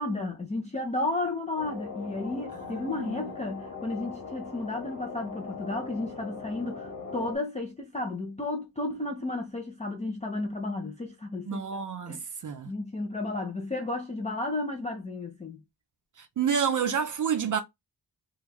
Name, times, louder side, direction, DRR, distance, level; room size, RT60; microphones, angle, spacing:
voice 1, 0.0-11.8 12.1-12.3 12.6-15.6, left 2 dB, 20° left, 0.4 m, -33 dB
sound 1, 1.6-7.4, left 4 dB, 50° left, 1.3 m, -40 dB
voice 2, 2.9-3.2 11.5-12.7 16.2-17.6, right 7 dB, 50° right, 0.5 m, -29 dB
2.9 x 2.3 x 3.5 m
wide cardioid pair, 170°, 40 cm